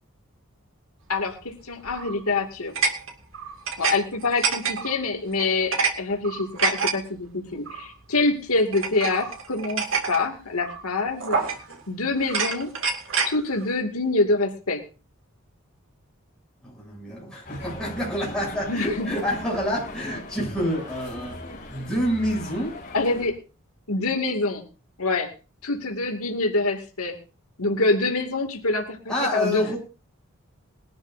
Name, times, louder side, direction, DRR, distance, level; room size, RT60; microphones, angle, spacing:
voice 1, 1.1-2.7 3.8-11.4 11.9-12.7 13.2-14.8 18.7-19.1 22.9-23.4 23.9-24.6 25.0-25.3 25.6-27.2 27.6-29.7, left 3 dB, 85° left, 3 dB, 2.4 m, -25 dB
sound 1, 1.9-2.2 2.8-4.0 4.2-5.0 5.4-5.9 6.2-6.9 7.7-7.9 8.7-10.2 10.6-10.8 11.2-11.8 12.2-13.3, right 5 dB, 65° right, 2.4 m, -27 dB
voice 2, 16.6-21.4 21.7-22.7 29.1-29.8, equal, 5° left, -4 dB, 7.7 m, -27 dB
sound 2, 17.5-23.3, left 2 dB, 35° left, 5.4 m, -39 dB
21.0 x 12.0 x 2.7 m, 0.32 s
head